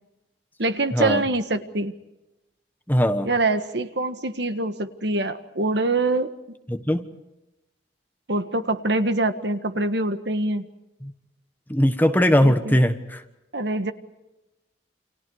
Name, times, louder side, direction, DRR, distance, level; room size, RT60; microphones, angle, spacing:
voice 1, 0.6-1.9 3.2-6.3 8.3-10.6 12.4-12.8 13.5-13.9, right 2 dB, 65° right, 9 dB, 1.6 m, -24 dB
voice 2, 2.9-3.3 6.7-7.1 11.0-11.1 11.7-13.2, equal, 10° left, 7 dB, 1.3 m, -20 dB
29.5 x 27.5 x 4.8 m, 0.96 s
head